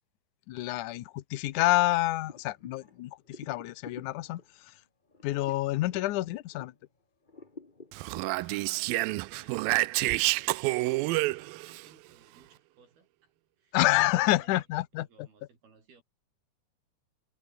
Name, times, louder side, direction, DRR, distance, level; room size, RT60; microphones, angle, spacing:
voice 1, 0.5-4.7 5.2-6.7 13.7-15.1, left 17 dB, 80° left, 1.8 m, -28 dB
sound 1, 2.3-6.9 7.2-9.1, left 3 dB, 20° left, 1.2 m, -51 dB
Speech, 7.9-11.8, right 21 dB, 85° right, 2.1 m, -28 dB
voice 2, 8.4-16.0, right 5 dB, 65° right, 8.0 m, -62 dB
omnidirectional pair, 4.7 m